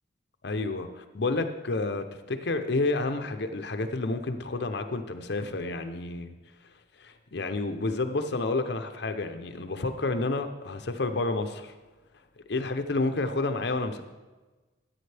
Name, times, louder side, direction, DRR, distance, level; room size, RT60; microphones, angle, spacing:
voice 1, 0.4-6.3 7.0-11.7 12.5-14.0, left 3 dB, 60° left, 7 dB, 0.7 m, -30 dB
14.0 x 8.5 x 3.4 m, 1.2 s
head